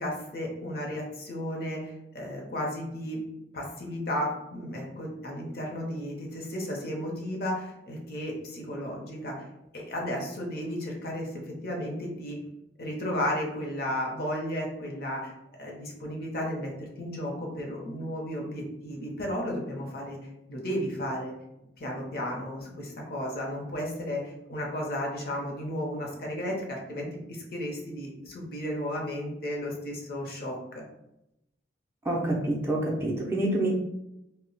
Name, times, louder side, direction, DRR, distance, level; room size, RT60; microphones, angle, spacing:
voice 1, 0.0-3.2 3.5-9.3 9.7-12.4 12.8-15.3 15.6-16.7 17.0-21.3 21.8-30.8, equal, 55° left, -1 dB, 0.7 m, -34 dB
voice 2, 32.1-33.7, right 1 dB, 15° right, -3 dB, 0.4 m, -27 dB
2.2 x 2.0 x 3.8 m, 0.87 s
head